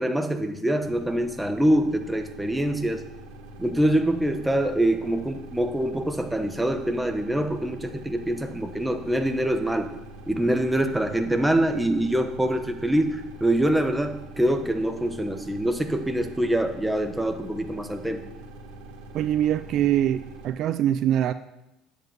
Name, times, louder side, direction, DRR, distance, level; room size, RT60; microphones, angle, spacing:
voice 1, 0.0-3.0 3.6-9.9 10.3-18.2, right 1 dB, 5° right, 6 dB, 1.1 m, -25 dB
sound 1, 0.8-20.5, right 1 dB, 85° right, 2.0 m, -44 dB
voice 2, 19.1-21.3, right 11 dB, 55° right, 13 dB, 0.4 m, -23 dB
10.5 x 8.1 x 5.2 m, 0.92 s
cardioid pair, 115°, 0 cm